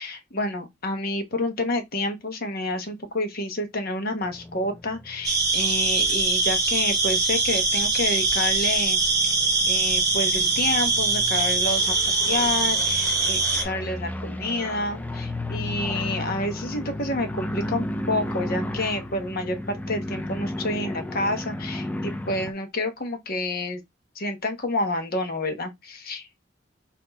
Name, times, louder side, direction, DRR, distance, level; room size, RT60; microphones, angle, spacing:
voice 1, 0.0-9.4 9.7-23.8 24.1-26.5, left 2 dB, 55° left, 1.1 m, -29 dB
sound 1, 4.2-22.5, left 1 dB, 10° left, 0.5 m, -34 dB
sound 2, 5.2-13.6, right 3 dB, 20° right, 1.3 m, -22 dB
4.3 x 2.8 x 4.0 m
head